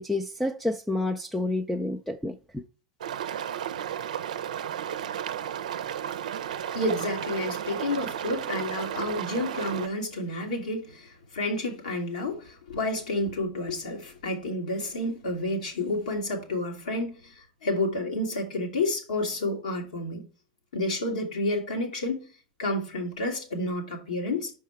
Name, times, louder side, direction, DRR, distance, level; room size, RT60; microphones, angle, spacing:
voice 1, 0.0-2.6, left 2 dB, 5° left, 0.5 m, -29 dB
sound 1, 3.0-9.9, right 9 dB, 75° right, 0.5 m, -33 dB
voice 2, 6.7-17.3 17.6-20.2 20.7-22.2 22.6-24.5, left 1 dB, 80° left, 2.1 m, -30 dB
5.5 x 4.7 x 4.6 m
hypercardioid pair, 95°, 4 cm